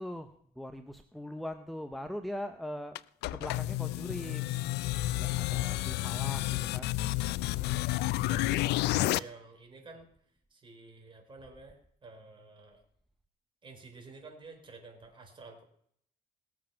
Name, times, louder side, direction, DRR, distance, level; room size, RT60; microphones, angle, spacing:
voice 1, 0.0-3.0 3.3-4.7 5.2-7.6, equal, ahead, 8 dB, 0.8 m, -41 dB
sound 1, 3.0-9.2, left 17 dB, 80° left, 0.4 m, -30 dB
voice 2, 8.2-10.1 10.5-12.8 13.6-15.6, right 3 dB, 30° right, 3 dB, 4.3 m, -50 dB
19.0 x 7.6 x 5.7 m, 0.68 s
cardioid pair, 110°, 17 cm